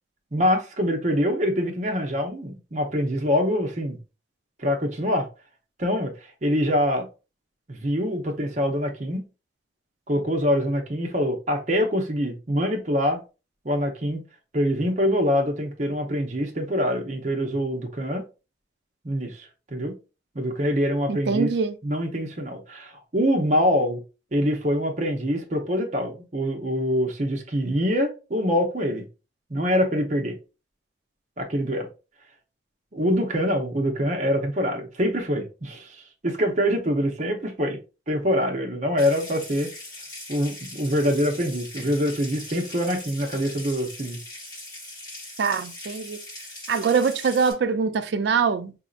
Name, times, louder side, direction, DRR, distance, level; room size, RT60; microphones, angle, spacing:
voice 1, 0.3-4.0 4.6-5.3 5.8-7.1 7.7-9.2 10.1-13.2 13.6-14.2 14.5-18.2 19.0-20.0 20.3-21.5 21.8-24.0 24.3-29.0 29.5-30.4 31.4-31.9 32.9-37.8 38.1-39.7 40.3-44.2, equal, 40° right, 0.8 m, -25 dB
voice 2, 21.1-21.8 45.4-46.2 46.7-48.7, right 5 dB, 60° right, 0.4 m, -23 dB
Water tap faucet / Sink (filling or washing) / Trickle dribble, 39.0-47.5, left 1 dB, 20° left, 1.8 m, -40 dB
5.1 x 2.7 x 2.4 m
head